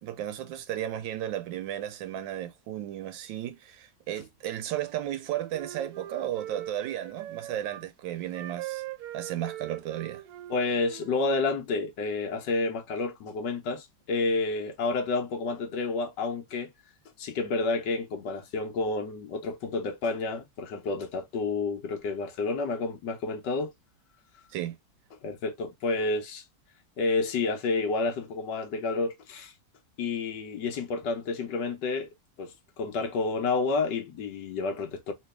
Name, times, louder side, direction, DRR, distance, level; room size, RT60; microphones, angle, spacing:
voice 1, 0.0-8.8 9.1-10.2 24.5-24.8, right 12 dB, 90° right, 1.4 m, -34 dB
Wind instrument woodwind instrument, 4.7-7.8 8.3-11.5, right 13 dB, 65° right, 1.0 m, -41 dB
voice 2, 10.5-16.7 17.2-23.7 25.2-26.4 27.0-29.5 30.0-32.1 32.4-35.1, left 3 dB, 70° left, 1.5 m, -30 dB
3.3 x 3.0 x 3.2 m
omnidirectional pair, 2.0 m